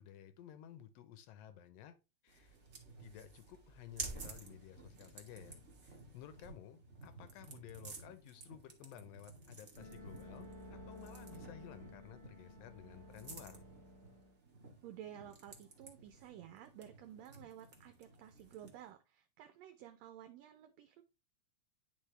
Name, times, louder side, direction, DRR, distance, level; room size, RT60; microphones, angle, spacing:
voice 1, 0.0-1.9 2.2-2.6 3.0-5.6 5.8-13.6, left 11 dB, 70° left, 11 dB, 1.7 m, -55 dB
sound 1, 2.3-18.9, right 3 dB, 45° right, 0.9 m, -53 dB
sound 2, 9.8-14.4, left 1 dB, 25° left, 1.0 m, -54 dB
voice 2, 14.8-21.0, right 11 dB, 75° right, 8 dB, 1.7 m, -53 dB
10.5 x 3.5 x 3.2 m, 0.28 s
omnidirectional pair, 3.3 m